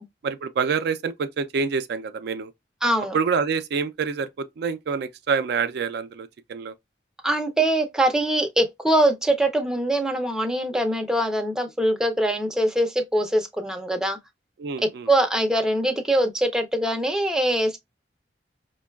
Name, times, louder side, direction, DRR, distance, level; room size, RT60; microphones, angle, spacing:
voice 1, 0.2-2.5 3.1-6.7 14.6-15.1, right 5 dB, 65° right, 0.4 m, -27 dB
voice 2, 2.8-3.2 7.2-14.2 14.8-17.8, right 1 dB, 5° right, 0.5 m, -23 dB
5.0 x 2.2 x 2.2 m
head